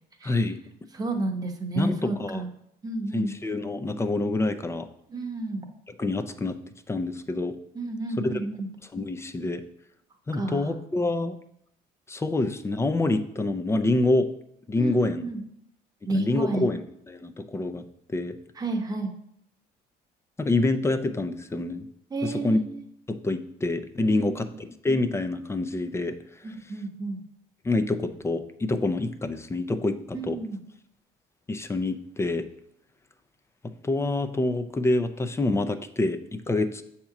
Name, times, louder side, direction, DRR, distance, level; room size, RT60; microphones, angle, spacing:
voice 1, 0.2-0.6 1.8-2.4 3.1-4.9 6.0-6.6 6.9-7.6 8.2-8.4 8.9-9.6 10.3-11.4 12.1-14.3 14.7-15.2 16.1-17.8 18.1-18.4 20.4-21.9 22.2-22.6 23.1-26.5 27.6-30.4 31.5-32.5 33.8-36.8, left 2 dB, 15° left, 9 dB, 0.5 m, -27 dB
voice 2, 0.9-2.5 2.8-3.3 5.1-5.7 7.7-8.7 10.3-10.7 14.8-15.4 16.1-16.7 18.6-19.1 22.1-22.8 24.1-24.5 26.4-27.2 30.1-30.6, right 2 dB, 20° right, 3 dB, 1.0 m, -31 dB
7.6 x 2.9 x 5.8 m, 0.74 s
cardioid pair, 110°, 17 cm